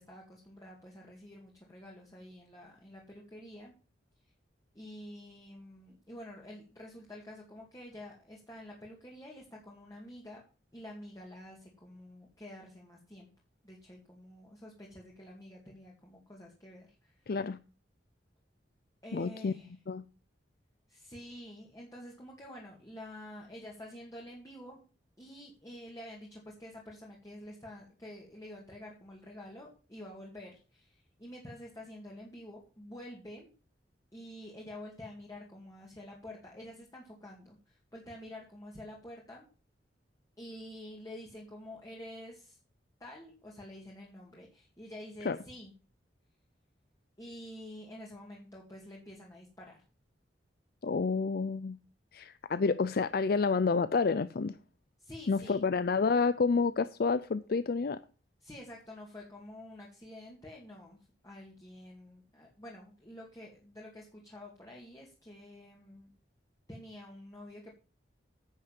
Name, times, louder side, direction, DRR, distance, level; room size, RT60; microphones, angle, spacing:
voice 1, 0.0-3.7 4.7-10.4 10.7-13.3 13.6-17.4 19.0-19.7 20.9-24.8 25.2-33.5 34.1-39.5 40.4-42.6 43.0-45.7 47.2-49.8 55.0-55.6 58.4-61.0 61.2-66.1 66.7-67.7, left 1 dB, 20° left, -2 dB, 2.4 m, -48 dB
voice 2, 17.3-17.6 19.1-19.5 19.9-20.0 45.2-45.4 50.8-51.8 52.1-54.6 55.3-58.0, left 4 dB, 55° left, 14 dB, 0.4 m, -29 dB
10.0 x 6.5 x 7.5 m, 0.36 s
head